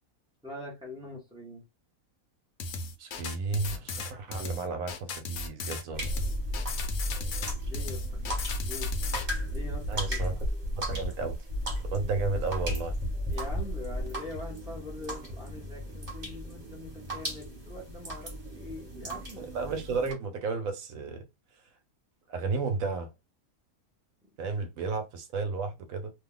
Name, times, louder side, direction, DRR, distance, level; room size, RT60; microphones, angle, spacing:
voice 1, 0.4-1.6 7.6-8.3 8.6-8.9 9.5-10.2 13.3-19.6, left 2 dB, 5° right, 0.6 m, -43 dB
sound 1, 2.6-9.3, left 3 dB, 70° left, 1.0 m, -36 dB
voice 2, 3.0-6.1 9.9-10.4 10.8-11.4 11.9-12.9 19.2-21.2 22.3-23.1 24.4-26.1, right 4 dB, 70° right, 1.0 m, -33 dB
sound 2, 5.9-20.1, equal, 30° right, 1.1 m, -34 dB
2.7 x 2.2 x 3.7 m
omnidirectional pair, 1.5 m